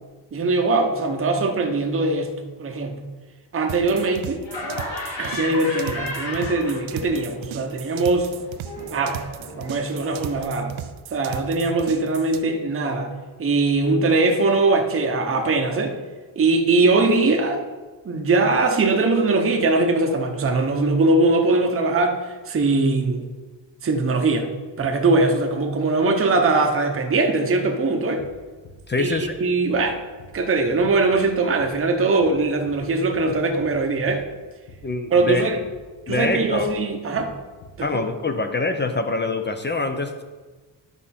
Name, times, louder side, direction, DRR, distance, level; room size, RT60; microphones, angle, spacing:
voice 1, 0.3-2.3 2.6-3.0 3.5-4.4 5.2-8.3 8.9-9.2 9.6-10.7 11.1-13.1 13.4-15.9 16.4-17.6 18.0-22.2 22.5-23.2 23.8-24.5 24.8-28.2 29.0-30.0 30.3-34.2 35.1-35.6 36.1-37.3 37.8-38.0, right 3 dB, 30° right, 3 dB, 0.8 m, -21 dB
sound 1, 3.7-12.4, right 10 dB, 85° right, 0.6 m, -37 dB
Laughter, 4.4-7.2 7.5-10.4, left 2 dB, 70° left, 2.5 m, -34 dB
sound 2, 28.2-28.4 28.6-28.8 29.1-29.3 29.7-29.9 30.2-30.4 30.7-30.9 31.1-31.3 31.6-31.8 32.2-32.4 32.7-32.9 33.1-33.3 33.6-33.8 34.1-34.3 34.7-34.9 35.1-35.3 35.6-35.8 36.1-36.3 36.5-36.7 37.1-37.3 37.6-37.8, left 1 dB, 90° left, 1.4 m, -46 dB
voice 2, 28.9-29.3 34.8-35.4 36.1-36.7 37.8-40.2, left 3 dB, 25° left, 7 dB, 0.5 m, -25 dB
11.0 x 5.1 x 4.2 m, 1.3 s
wide cardioid pair, 140°, 46 cm